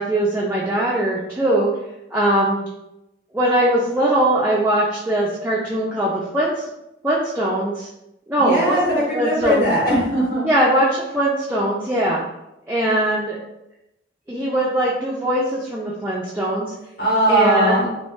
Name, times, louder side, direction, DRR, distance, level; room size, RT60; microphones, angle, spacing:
voice 1, 0.0-1.7 2.1-2.7 3.3-6.7 7.0-7.9 8.3-9.6 10.4-12.2 12.7-13.4 14.3-16.7 17.3-17.8, right 1 dB, 10° right, -5 dB, 0.3 m, -21 dB
voice 2, 8.4-10.4 17.0-17.8, right 1 dB, 50° left, -8 dB, 1.4 m, -19 dB
3.1 x 2.2 x 3.1 m, 0.88 s
head